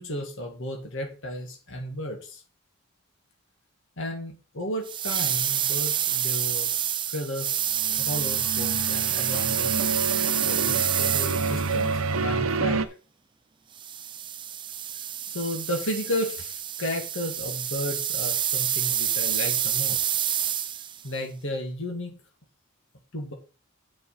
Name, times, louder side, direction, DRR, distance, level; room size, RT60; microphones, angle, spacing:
voice 1, 0.0-2.4 4.0-6.7 7.1-7.6 8.0-9.8 10.4-12.9 15.3-20.0 21.0-22.2 23.1-23.3, left 1 dB, 60° left, 2 dB, 2.2 m, -33 dB
sound 1, 4.9-11.9 13.8-21.0, right 10 dB, 20° right, 0.4 m, -28 dB
sound 2, 7.8-12.9, right 4 dB, 70° right, 0.8 m, -28 dB
7.9 x 5.4 x 5.8 m, 0.34 s
head